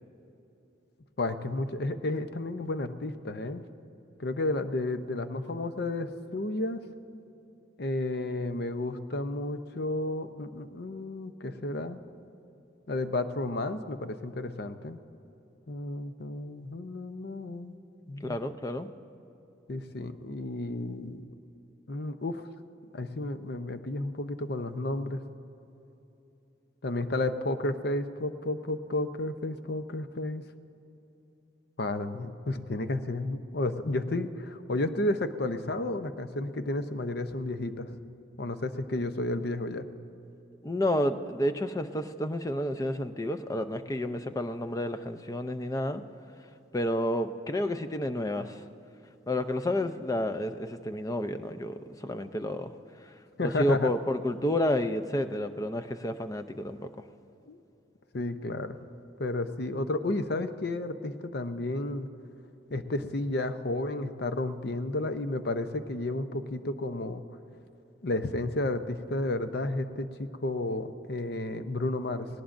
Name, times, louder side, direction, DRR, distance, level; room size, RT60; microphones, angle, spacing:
voice 1, 1.2-3.6 4.2-6.8 7.8-12.0 12.9-15.0 15.7-17.8 18.1-18.4 19.7-21.3 21.9-22.5 22.9-25.2 26.8-30.4 31.8-37.9 38.4-39.9 53.4-53.9 57.5-57.6 58.1-58.8 59.2-62.1 62.7-67.2 68.0-72.3, left 2 dB, 55° left, 9 dB, 0.6 m, -32 dB
voice 2, 18.2-18.9 40.6-46.0 46.7-48.6 49.3-52.7 53.4-56.9, left 1 dB, 20° left, 9 dB, 0.5 m, -30 dB
18.5 x 18.5 x 2.6 m, 2.9 s
head